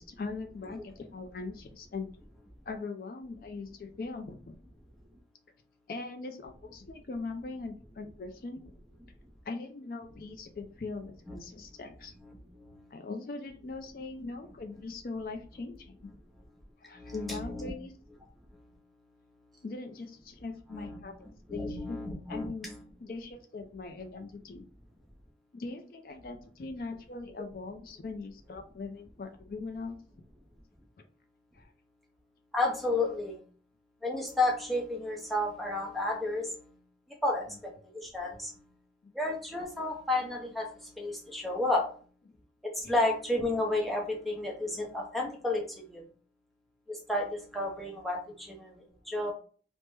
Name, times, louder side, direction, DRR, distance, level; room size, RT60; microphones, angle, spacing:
voice 1, 0.0-2.1 2.7-4.6 5.9-8.6 9.5-12.1 12.9-16.0 16.8-17.9 19.6-21.2 21.5-22.0 22.3-22.7 23.0-24.6 25.5-30.0 31.5-31.7 39.0-39.1 42.8-42.9, left 3 dB, 55° left, 6 dB, 0.3 m, -40 dB
voice 2, 12.2-12.9 16.9-17.7 18.5-18.7 20.7-21.0 21.5-22.8 32.5-33.4 34.0-36.7 37.2-37.7 38.0-38.6 39.1-41.9 42.8-46.0 46.9-48.8 49.1-49.3, left 2 dB, ahead, -3 dB, 0.7 m, -32 dB
3.2 x 2.0 x 3.1 m, 0.41 s
head